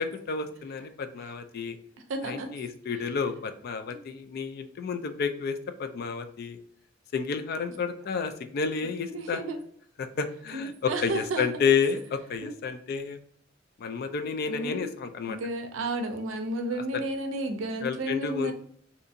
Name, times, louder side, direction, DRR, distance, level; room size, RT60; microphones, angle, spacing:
voice 1, 0.0-1.8 2.2-6.6 7.1-9.4 10.0-13.2 13.8-15.4 16.9-17.0 17.8-18.5, left 5 dB, 50° left, 9 dB, 0.3 m, -30 dB
voice 2, 2.1-2.5 3.9-4.0 9.1-9.6 10.5-11.5 12.4-12.5 14.5-14.9 15.3-18.5, right 2 dB, 90° right, 6 dB, 0.5 m, -32 dB
2.7 x 2.4 x 2.6 m, 0.64 s
head